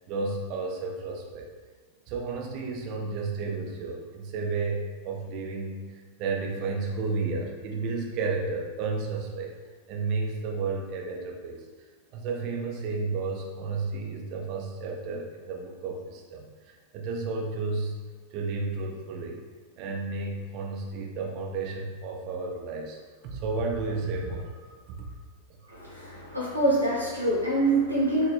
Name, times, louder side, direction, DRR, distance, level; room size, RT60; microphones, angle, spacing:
voice 1, 0.1-1.5 2.1-9.5 9.9-11.7 12.1-17.9 18.3-19.4 19.8-25.1 25.5-25.8, right 4 dB, 40° right, 1 dB, 0.6 m, -32 dB
voice 2, 25.7-28.3, right 1 dB, 90° left, -7 dB, 1.4 m, -25 dB
5.9 x 2.8 x 2.3 m, 1.4 s
figure-of-eight pair, 90°, 0 cm